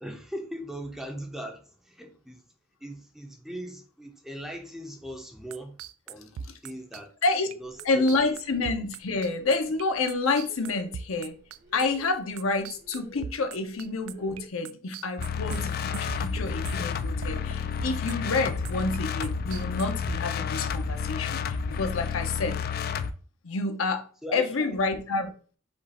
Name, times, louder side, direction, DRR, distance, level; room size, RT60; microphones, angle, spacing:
voice 1, 0.0-2.4 2.8-5.8 6.1-6.3 6.6-7.1 7.6-8.2 24.2-24.8, right 1 dB, ahead, 0.6 m, -39 dB
sound 1, 5.5-14.4 14.7-16.9 17.2-17.5 17.8-19.0 19.2-20.2, right 6 dB, 75° right, 0.3 m, -39 dB
sound 2, 7.6-14.5, right 1 dB, 50° right, 1.2 m, -53 dB
voice 2, 7.8-11.3 11.7-22.6 23.4-24.0 24.3-25.3, left 3 dB, 70° left, 0.7 m, -28 dB
sound 3, 15.2-23.1, left 6 dB, 45° left, 0.3 m, -31 dB
5.2 x 2.4 x 4.2 m
head